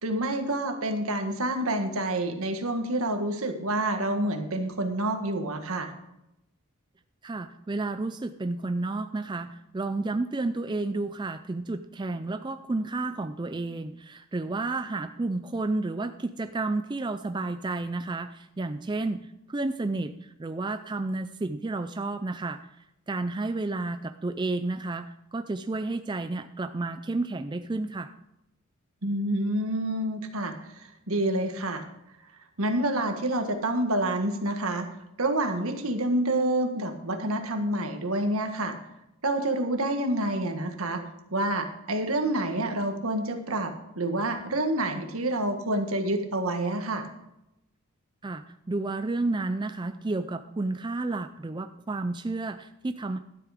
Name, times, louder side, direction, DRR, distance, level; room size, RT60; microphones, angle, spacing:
voice 1, 0.0-5.9 29.0-31.8 32.6-34.9 35.2-38.7 39.2-41.0 41.3-47.1, right 1 dB, 70° right, 5 dB, 1.6 m, -28 dB
voice 2, 7.2-22.7 23.1-28.1 48.2-53.2, right 2 dB, 20° right, 9 dB, 0.4 m, -31 dB
12.5 x 8.2 x 5.1 m, 0.85 s
head